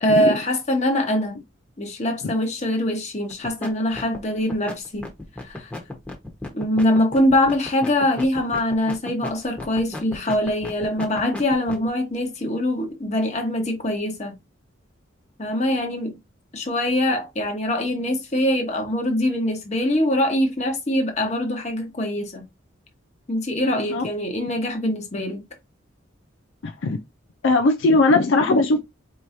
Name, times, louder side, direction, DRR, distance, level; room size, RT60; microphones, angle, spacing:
voice 1, 0.0-1.4 1.8-5.1 5.4-5.7 6.5-14.3 15.4-16.1 16.5-22.4 23.3-25.4, left 1 dB, 35° left, 1.1 m, -23 dB
sound 1, 3.3-3.7 3.9-11.9, left 2 dB, 5° left, 1.1 m, -34 dB
voice 2, 23.6-24.1 26.6-27.0 27.4-28.8, left 2 dB, 65° left, 0.5 m, -19 dB
4.6 x 3.0 x 2.6 m
head